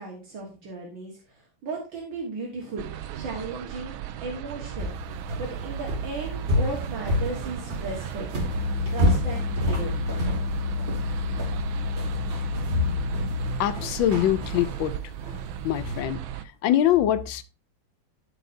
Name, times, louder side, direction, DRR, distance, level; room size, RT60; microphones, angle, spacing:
voice 1, 0.0-2.9 3.1-4.9 5.4-8.3 8.9-9.9, right 3 dB, 75° right, 2.3 m, -36 dB
sound 1, 2.8-16.4, right 10 dB, 90° right, 1.5 m, -36 dB
sound 2, 4.8-16.0, left 1 dB, 35° right, 2.1 m, -31 dB
sound 3, 8.5-13.7, left 5 dB, 40° left, 1.9 m, -30 dB
voice 2, 13.6-14.9 15.6-16.2 16.6-17.4, left 11 dB, 75° left, 1.3 m, -23 dB
13.5 x 4.7 x 2.7 m
omnidirectional pair, 2.2 m